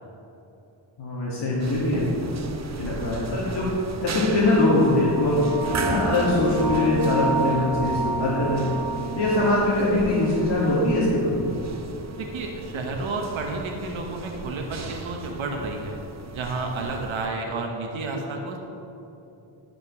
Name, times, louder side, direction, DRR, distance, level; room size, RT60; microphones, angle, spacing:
voice 1, 1.0-2.1 2.8-3.7 4.0-5.4 5.8-8.7 9.2-11.5, left 2 dB, 60° left, -7 dB, 2.0 m, -22 dB
sound 1, 1.6-17.3, right 3 dB, 35° right, 0.8 m, -36 dB
sound 2, 4.2-11.4, right 3 dB, 10° right, 2.2 m, -31 dB
voice 2, 12.2-16.0 16.3-18.6, right 3 dB, 80° right, 1 dB, 1.1 m, -31 dB
9.8 x 5.2 x 6.2 m, 2.9 s
cardioid pair, 75°, 47 cm